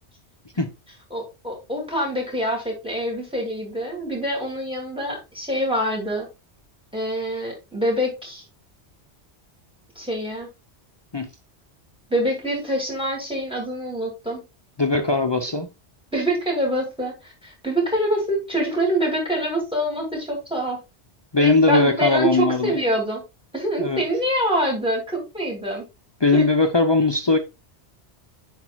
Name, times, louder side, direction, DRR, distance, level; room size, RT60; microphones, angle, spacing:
voice 1, 1.1-6.3 6.9-8.4 10.0-10.5 12.1-14.4 16.1-20.8 21.4-23.2 23.5-25.8 26.3-26.4, right 1 dB, 5° right, 2.6 m, -25 dB
voice 2, 14.8-15.7 21.3-22.8 23.8-24.0 26.2-27.4, left 3 dB, 35° left, 0.5 m, -19 dB
10.5 x 4.3 x 2.4 m
omnidirectional pair, 1.1 m